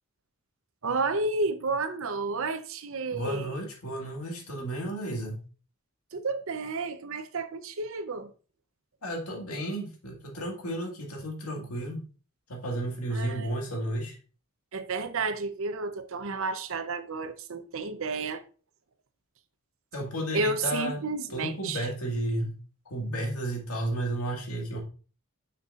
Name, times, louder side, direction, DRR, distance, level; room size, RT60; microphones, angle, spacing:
voice 1, 0.8-3.6 6.1-8.3 13.1-13.6 14.7-18.4 20.3-21.9, right 3 dB, 65° right, 0.7 m, -31 dB
voice 2, 3.1-5.4 9.0-12.1 12.5-14.2 19.9-21.0 21.3-22.6 22.9-24.8, right 1 dB, 85° left, 1.9 m, -32 dB
6.7 x 6.7 x 2.4 m
head